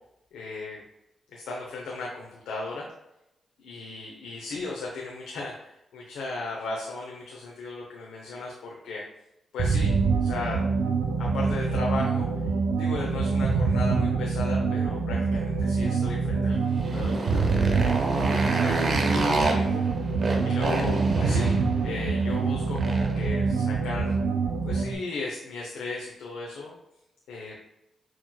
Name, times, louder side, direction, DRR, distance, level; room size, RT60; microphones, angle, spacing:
voice 1, 0.3-0.8 1.3-2.8 3.6-9.0 9.5-9.9 10.2-10.6 11.2-12.4 12.8-17.6 18.3-19.8 20.4-21.5 21.8-24.1 24.6-26.8 27.3-27.6, left 3 dB, 85° left, -3 dB, 0.7 m, -36 dB
sound 1, 9.6-25.0, right 4 dB, 85° right, 0.5 m, -25 dB
Motorcycle, 16.6-23.3, right 2 dB, 50° right, 0.8 m, -29 dB
6.0 x 3.0 x 2.2 m, 0.88 s
cardioid pair, 60°, 0 cm